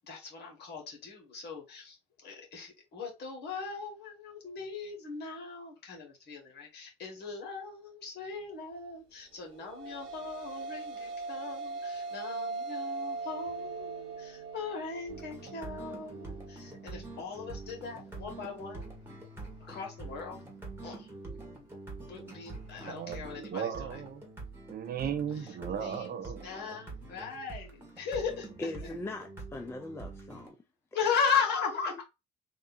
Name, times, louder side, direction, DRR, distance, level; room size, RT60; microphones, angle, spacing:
voice 1, 0.1-18.9 19.7-20.4 20.8-21.1 22.0-24.0 25.7-26.2 26.4-28.5 30.9-32.0, left 6 dB, 55° left, 2.0 m, -37 dB
sound 1, 9.4-18.0, right 3 dB, 70° right, 1.2 m, -41 dB
sound 2, 15.1-30.5, right 2 dB, 10° right, 1.6 m, -45 dB
voice 2, 22.8-24.2 24.7-26.5, right 8 dB, 45° right, 0.7 m, -36 dB
voice 3, 28.6-30.6 31.4-31.5 31.9-32.0, left 2 dB, 10° left, 0.5 m, -40 dB
3.6 x 2.7 x 4.2 m
cardioid pair, 120°, 20 cm